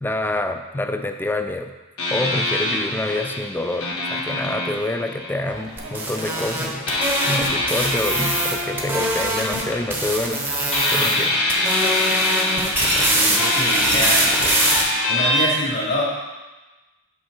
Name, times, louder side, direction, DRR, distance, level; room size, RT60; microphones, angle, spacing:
voice 1, 0.0-1.7 2.1-6.8 7.3-10.5 10.9-11.4, left 2 dB, 10° left, 7 dB, 0.3 m, -27 dB
sound 1, 2.0-5.8 6.9-10.4 10.7-15.5, left 1 dB, 80° left, 1.4 m, -24 dB
sound 2, 5.5-10.8, right 2 dB, 45° right, 0.7 m, -40 dB
sound 3, 5.8-9.6 9.9-11.2 11.5-14.8, right 1 dB, 10° right, 0.8 m, -23 dB
voice 2, 13.1-14.3 15.1-16.0, left 1 dB, 50° left, -5 dB, 2.2 m, -24 dB
6.2 x 5.5 x 4.4 m, 1.2 s
head